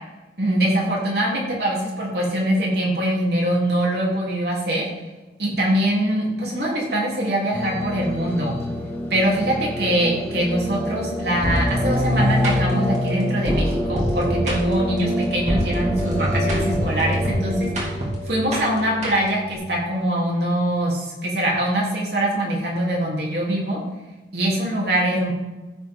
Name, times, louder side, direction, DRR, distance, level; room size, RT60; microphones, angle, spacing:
voice 1, 0.4-4.8 5.4-8.5 9.1-17.9 18.3-23.8 24.3-25.3, right 1 dB, 65° right, -3 dB, 3.5 m, -23 dB
sound 1, 7.5-17.8, equal, 10° left, 2.0 m, -29 dB
sound 2, 11.4-19.5, equal, 40° right, 2.7 m, -25 dB
15.0 x 7.4 x 3.9 m, 1.1 s
head